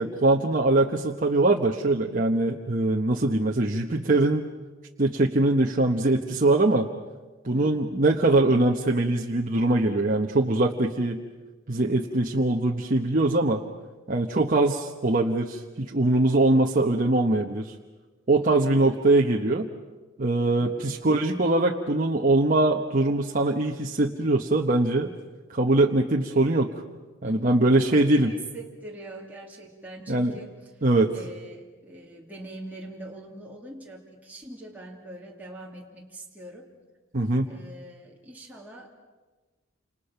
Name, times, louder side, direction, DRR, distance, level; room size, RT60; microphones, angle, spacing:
voice 1, 0.0-4.5 5.0-6.9 7.4-11.2 11.7-13.6 14.1-17.7 18.3-19.7 20.2-25.1 25.5-26.7 27.2-28.3 30.1-30.3 30.8-31.1 37.1-37.5, right 2 dB, 40° right, 1 dB, 1.1 m, -22 dB
voice 2, 7.5-7.9 18.3-19.0 20.5-21.0 27.2-27.8 28.1-30.8 31.1-36.7 37.4-38.9, right 1 dB, 10° right, -3 dB, 2.8 m, -43 dB
29.5 x 27.5 x 5.9 m, 1.3 s
head